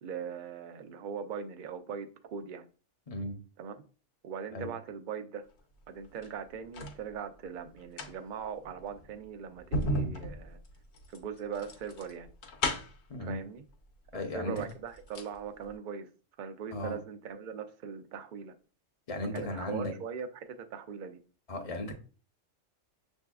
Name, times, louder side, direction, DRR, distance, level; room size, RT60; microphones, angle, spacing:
voice 1, 0.0-2.7 3.6-3.8 4.2-5.5 5.9-10.6 11.1-12.3 13.2-13.6 14.1-16.1 16.4-18.5 19.3-21.2, right 7 dB, 60° right, 0.5 m, -40 dB
sound 1, 6.0-7.0 7.7-13.1 14.1-14.2 14.6-15.4 15.7-15.8, left 1 dB, 65° left, 1.0 m, -35 dB
voice 2, 13.1-13.4 14.1-14.6 16.7-17.0 19.1-19.9 21.5-21.9, left 1 dB, 40° left, 0.6 m, -36 dB
6.5 x 2.7 x 2.3 m
omnidirectional pair, 1.3 m